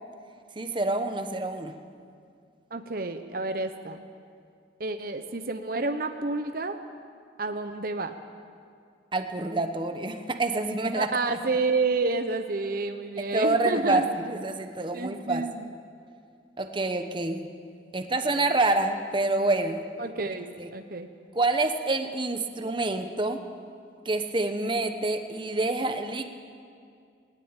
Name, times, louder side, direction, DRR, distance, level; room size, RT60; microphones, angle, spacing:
voice 1, 0.5-1.7 9.1-11.1 13.3-15.5 16.6-17.5 17.9-19.8 20.6-20.7 21.3-23.4 24.0-26.3, right 2 dB, 25° right, 7 dB, 1.1 m, -27 dB
voice 2, 2.7-4.0 4.8-6.8 7.4-8.2 11.0-14.1 14.9-15.7 20.0-21.1, right 3 dB, 55° right, 7 dB, 1.0 m, -29 dB
19.5 x 19.5 x 9.0 m, 2.3 s
head